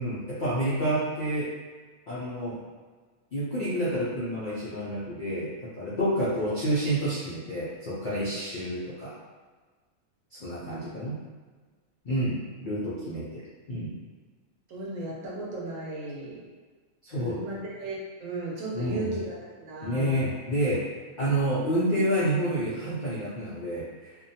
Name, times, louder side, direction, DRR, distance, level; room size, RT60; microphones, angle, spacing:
voice 1, 0.0-1.5 2.1-2.6 3.3-9.1 10.4-11.2 12.0-13.4 13.7-13.9 17.0-17.4 18.7-19.1 19.8-20.8 21.2-23.9, right 1 dB, 60° left, -10 dB, 0.5 m, -29 dB
voice 2, 14.7-16.4 17.1-20.2, right 2 dB, 70° right, -5 dB, 1.0 m, -36 dB
2.6 x 2.2 x 2.7 m, 1.4 s
omnidirectional pair, 1.5 m